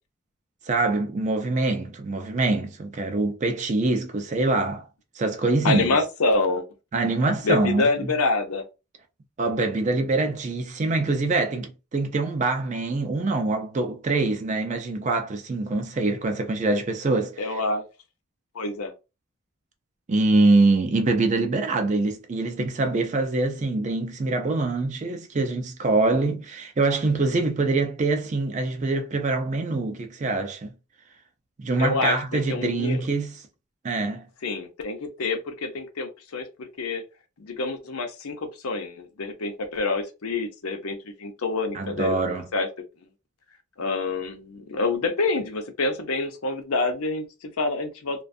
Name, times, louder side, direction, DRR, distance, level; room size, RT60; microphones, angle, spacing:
voice 1, 0.7-4.9 5.2-5.9 6.9-7.9 9.4-17.6 20.1-30.7 31.6-33.3 33.8-34.2 41.7-42.5, right 3 dB, 35° right, 0.4 m, -24 dB
voice 2, 5.6-6.7 7.4-8.6 17.4-17.8 18.5-18.9 31.8-33.0 34.4-37.0 37.4-42.7 43.8-48.2, left 3 dB, 85° left, 0.6 m, -27 dB
2.4 x 2.2 x 2.5 m
head